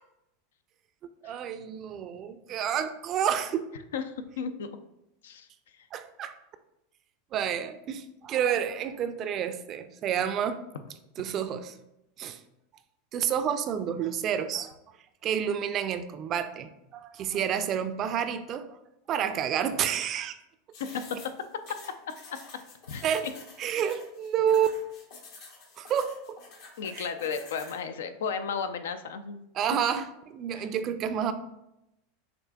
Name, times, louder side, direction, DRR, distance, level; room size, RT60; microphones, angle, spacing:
voice 1, 1.2-3.7 5.9-6.4 7.3-10.6 11.2-11.8 12.2-12.4 13.1-14.7 15.2-18.8 19.1-20.3 23.0-23.3 23.6-24.8 25.8-26.1 26.9-27.1 29.5-31.3, right 8 dB, 40° right, 10 dB, 0.3 m, -29 dB
voice 2, 3.9-4.7 5.2-5.5 5.8-5.9 20.8-21.0 21.7-21.8 22.1-22.4 22.9-23.0 26.8-29.4 30.6-30.7, left 6 dB, 80° left, 10 dB, 0.3 m, -34 dB
sound 1, 20.7-27.8, left 4 dB, 60° left, 0.9 m, -49 dB
6.5 x 2.5 x 2.3 m, 0.86 s
hypercardioid pair, 95°, 0 cm